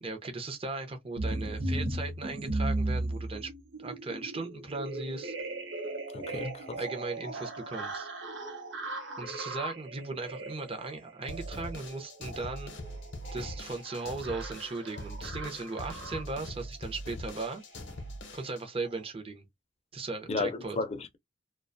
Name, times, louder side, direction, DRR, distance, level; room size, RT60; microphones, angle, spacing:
voice 1, 0.0-3.5 3.8-5.3 6.3-6.4 6.8-8.1 9.2-12.7 13.3-17.6 18.3-19.5 19.9-20.8, right 3 dB, 30° right, 0.6 m, -37 dB
sound 1, 1.2-16.5 17.3-17.5 17.8-18.0 18.3-18.5 18.8-19.0, right 2 dB, 80° right, 0.7 m, -37 dB
voice 2, 6.1-6.8 20.3-21.2, left 3 dB, 35° left, 0.5 m, -33 dB
sound 2, 11.3-18.6, equal, 70° left, 0.7 m, -42 dB
2.4 x 2.2 x 2.5 m
head